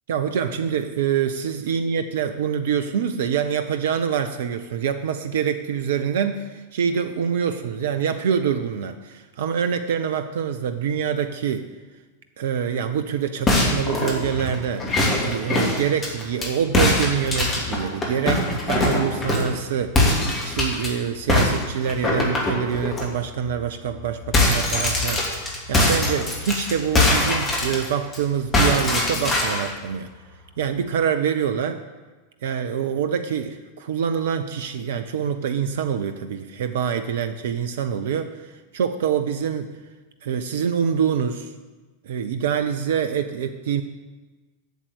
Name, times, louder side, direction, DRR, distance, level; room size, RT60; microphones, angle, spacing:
voice 1, 0.1-11.7 12.4-14.9 15.2-20.0 20.4-30.1 30.6-31.8 32.4-39.7 40.2-41.5 42.0-43.8, right 7 dB, 60° right, 9 dB, 0.6 m, -25 dB
sound 1, 13.5-16.5 16.7-19.6 19.9-20.9 21.3-23.0 23.5-23.6 23.9-28.2 28.5-29.7, left 2 dB, 25° left, 2.8 m, -22 dB
8.1 x 7.5 x 8.5 m, 1.3 s
figure-of-eight pair, 90°, 0 cm